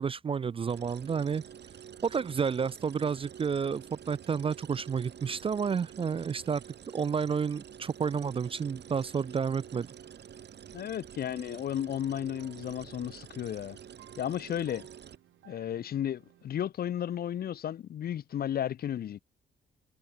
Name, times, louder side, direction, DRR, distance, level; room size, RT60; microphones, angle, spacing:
voice 1, 0.0-1.4 2.0-6.6 6.9-9.9, right 6 dB, 30° right, 0.4 m, -30 dB
sound 1, 0.7-15.2, right 8 dB, 60° right, 7.9 m, -49 dB
sound 2, 8.5-16.6, right 13 dB, 80° right, 7.4 m, -61 dB
voice 2, 10.7-13.8 14.2-14.9 15.4-19.2, left 10 dB, 50° left, 0.6 m, -33 dB
cardioid pair, 90°, 20 cm